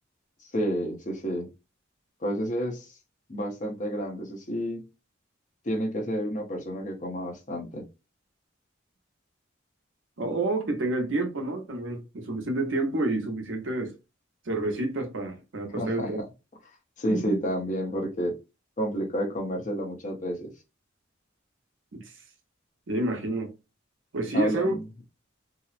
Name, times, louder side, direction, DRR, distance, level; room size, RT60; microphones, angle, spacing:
voice 1, 0.4-1.5 2.2-2.9 3.3-4.8 5.6-7.8 15.8-16.1 17.0-18.4 18.8-20.5 24.3-24.8, equal, 40° left, 0.7 m, -30 dB
voice 2, 10.2-14.0 14.5-16.2 17.1-17.4 21.9-22.0 22.9-23.5 24.1-24.8, right 2 dB, 75° right, 0.7 m, -29 dB
2.8 x 2.0 x 2.4 m
head